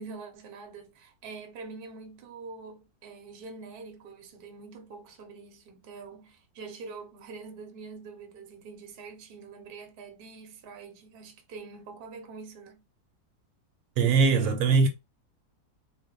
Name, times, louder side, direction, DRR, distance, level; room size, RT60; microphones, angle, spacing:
voice 1, 0.0-12.8, right 4 dB, 50° right, 0.7 m, -45 dB
voice 2, 14.0-14.9, right 4 dB, 75° right, 1.0 m, -21 dB
2.6 x 2.1 x 3.6 m
omnidirectional pair, 1.7 m